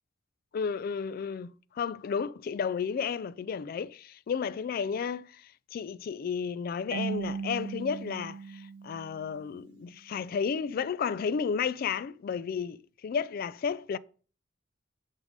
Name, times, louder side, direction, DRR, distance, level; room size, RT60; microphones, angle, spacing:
voice 1, 0.5-14.0, left 6 dB, 50° left, 0.3 m, -32 dB
Marimba xylophone / Wood, 6.9-9.6, right 5 dB, 90° right, 0.5 m, -37 dB
9.4 x 3.7 x 5.1 m
head